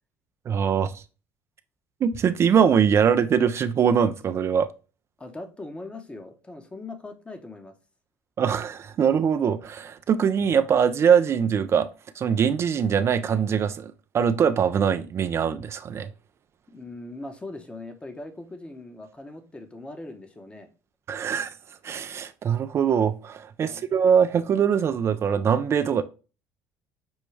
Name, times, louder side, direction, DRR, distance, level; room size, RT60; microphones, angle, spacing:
voice 1, 0.5-1.0 2.0-4.7 8.4-11.9 12.2-16.1 21.1-21.5 21.8-26.0, right 7 dB, 45° right, 0.4 m, -22 dB
voice 2, 5.2-7.7 16.7-20.7 23.6-23.9, left 2 dB, 15° left, 0.8 m, -40 dB
6.1 x 2.2 x 3.1 m
supercardioid pair, 75°, 7 cm